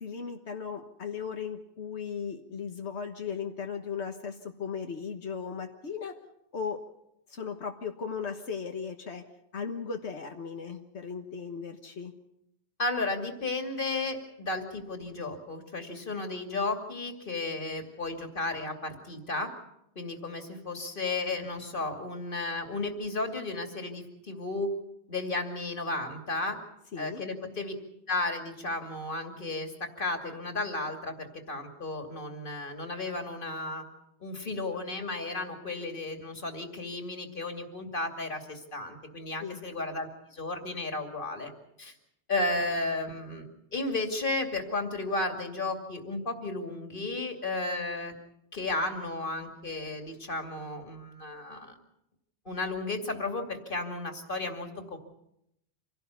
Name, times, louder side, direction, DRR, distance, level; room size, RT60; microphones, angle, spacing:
voice 1, 0.0-6.2 6.5-6.8 7.3-9.2 9.5-12.1 26.9-27.2 39.4-39.6, left 6 dB, 90° left, 4 dB, 1.7 m, -37 dB
voice 2, 12.8-19.5 20.0-24.7 25.1-26.6 27.0-27.7 28.1-29.7 30.0-33.8 34.2-41.5 41.8-41.9 42.3-43.5 43.7-48.1 48.5-51.8 52.5-55.0, left 2 dB, 50° left, 4 dB, 2.8 m, -33 dB
26.5 x 17.5 x 7.0 m, 0.80 s
omnidirectional pair, 1.1 m